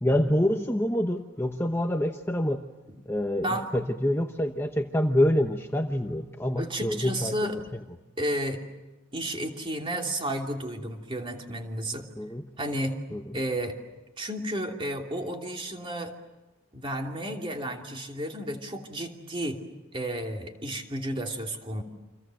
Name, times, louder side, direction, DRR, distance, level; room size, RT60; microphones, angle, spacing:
voice 1, 0.0-2.6 3.1-7.4 12.2-12.4 13.1-13.4, left 1 dB, 10° left, 4 dB, 0.9 m, -26 dB
voice 2, 6.6-7.5 8.2-8.6 9.1-12.1 12.6-13.0 13.3-13.8 14.2-16.1 16.7-19.6 19.9-21.8, right 1 dB, 25° right, 2 dB, 2.8 m, -32 dB
29.5 x 26.0 x 7.7 m, 1.1 s
head